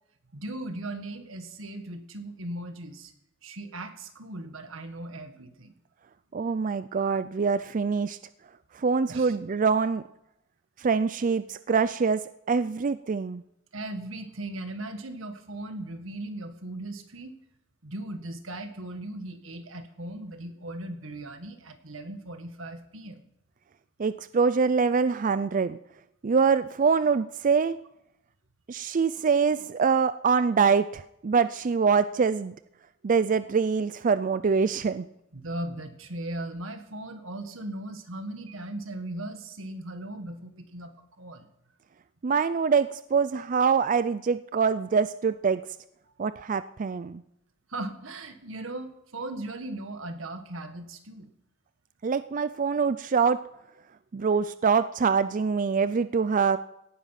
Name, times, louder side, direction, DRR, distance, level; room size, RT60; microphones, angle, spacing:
voice 1, 0.3-3.1 3.4-5.7 9.1-9.4 13.7-17.3 17.8-23.3 35.3-41.5 46.1-46.2 47.7-51.3, right 1 dB, 90° right, 7 dB, 1.8 m, -38 dB
voice 2, 6.3-8.2 8.7-10.0 10.8-12.2 12.5-13.4 24.0-25.8 26.2-27.8 28.7-32.5 33.0-35.1 42.2-45.6 46.2-47.2 52.0-53.4 54.1-56.6, right 5 dB, 40° right, 14 dB, 0.4 m, -24 dB
17.5 x 10.5 x 5.9 m, 0.80 s
head